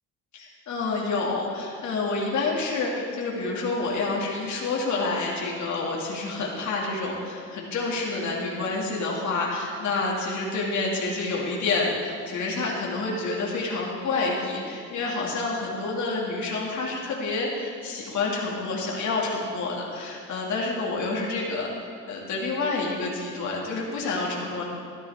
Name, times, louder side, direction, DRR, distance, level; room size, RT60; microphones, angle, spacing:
voice 1, 0.3-21.7 22.1-24.6, left 3 dB, 70° left, -3 dB, 2.6 m, -28 dB
13.5 x 12.0 x 3.7 m, 2.3 s
cardioid pair, 90°, 30 cm